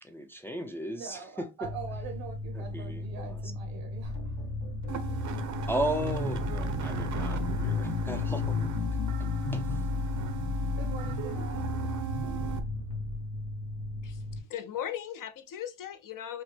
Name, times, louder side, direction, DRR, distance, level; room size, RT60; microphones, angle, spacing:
voice 1, 0.0-1.5 2.5-3.4 5.7-8.6 9.5-9.8, right 1 dB, 5° left, 0.5 m, -35 dB
voice 2, 0.9-4.4 10.7-11.7, right 6 dB, 80° right, 1.8 m, -43 dB
Mechanical fan, 1.6-14.4, left 1 dB, 85° left, 1.8 m, -37 dB
sound 1, 4.0-13.1, left 5 dB, 65° left, 1.1 m, -34 dB
sound 2, 4.9-12.6, right 8 dB, 45° right, 0.9 m, -37 dB
voice 3, 14.5-16.4, left 10 dB, 50° left, 0.7 m, -38 dB
6.1 x 2.1 x 3.3 m
supercardioid pair, 85°, 43 cm